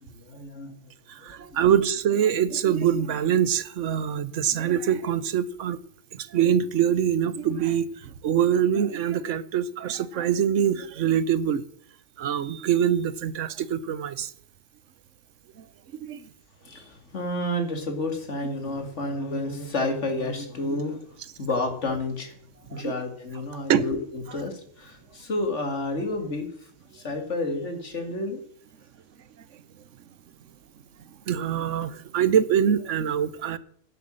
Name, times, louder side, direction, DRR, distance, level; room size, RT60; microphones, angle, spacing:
voice 1, 0.1-0.7 1.3-1.6 16.6-21.0 21.4-26.5 26.9-28.4, left 2 dB, 70° left, 2.6 m, -30 dB
voice 2, 1.1-5.8 6.1-11.6 12.2-14.3 15.6-15.7 15.9-16.2 22.7-22.9 23.7-23.9 31.3-33.6, right 9 dB, 80° right, 1.2 m, -24 dB
10.5 x 8.1 x 7.6 m
omnidirectional pair, 1.2 m